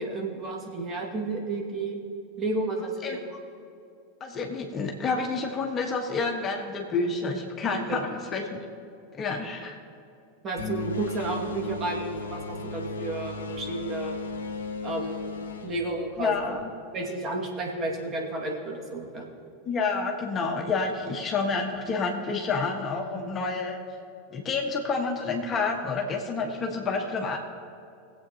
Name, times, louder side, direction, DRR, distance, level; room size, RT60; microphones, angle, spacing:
voice 1, 0.0-2.0 2.4-3.2 7.7-8.0 10.4-14.1 14.8-15.2 15.6-16.4 16.9-19.3 23.1-23.3, right 2 dB, 30° right, -1 dB, 2.1 m, -32 dB
voice 2, 4.2-8.6 9.1-9.8 16.2-16.7 19.6-23.8 24.3-27.4, left 4 dB, 30° left, 1 dB, 1.4 m, -29 dB
sound 1, 10.6-16.6, left 3 dB, 75° left, 1.0 m, -35 dB
20.0 x 8.1 x 2.9 m, 2.6 s
figure-of-eight pair, 90°, 0 cm